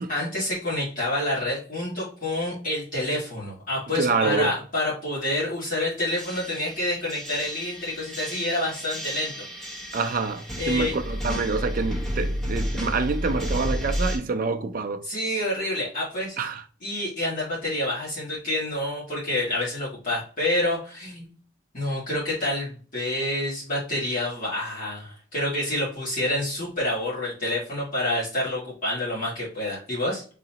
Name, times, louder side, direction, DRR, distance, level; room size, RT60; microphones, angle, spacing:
voice 1, 0.0-9.8 10.6-11.0 15.0-16.4 16.8-21.3 21.7-30.2, left 1 dB, 45° left, 1.8 m, -28 dB
voice 2, 3.9-4.6 9.9-15.0 16.4-16.6, right 4 dB, 45° right, 0.4 m, -26 dB
sound 1, 6.1-14.2, equal, 5° left, 1.0 m, -31 dB
3.9 x 2.9 x 2.8 m
head